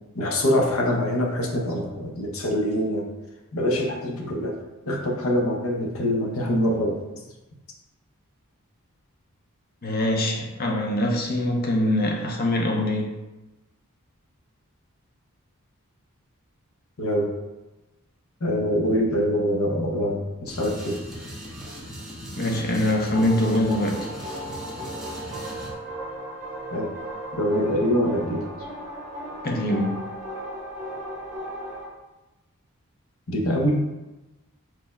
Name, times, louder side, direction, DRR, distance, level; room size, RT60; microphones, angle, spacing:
voice 1, 0.1-3.1 3.5-4.6 4.8-7.0 17.0-17.3 18.4-21.0 26.7-26.9 27.4-28.5 33.3-33.8, equal, 75° left, 1 dB, 0.8 m, -24 dB
voice 2, 9.8-13.2 22.3-24.1 29.4-30.1, left 1 dB, 45° left, 2 dB, 0.6 m, -23 dB
sound 1, 20.5-25.7, equal, 5° right, 0.9 m, -39 dB
sound 2, 23.1-31.9, right 1 dB, 35° right, 1.1 m, -36 dB
4.4 x 4.3 x 2.2 m, 1.1 s
head